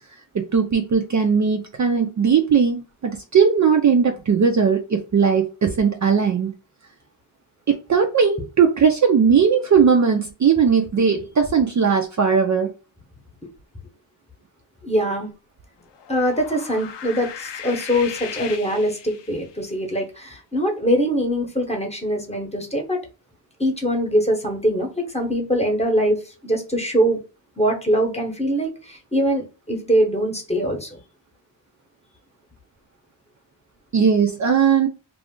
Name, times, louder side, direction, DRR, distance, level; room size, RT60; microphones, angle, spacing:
voice 1, 0.3-6.5 7.7-12.7 33.9-34.9, right 6 dB, 40° right, 0.4 m, -18 dB
voice 2, 14.8-15.3 16.1-23.0 23.6-27.2 27.6-31.0, equal, 15° left, 0.9 m, -22 dB
sound 1, 15.9-19.6, left 8 dB, 70° left, 0.5 m, -37 dB
2.4 x 2.1 x 3.6 m
cardioid pair, 75°, 45 cm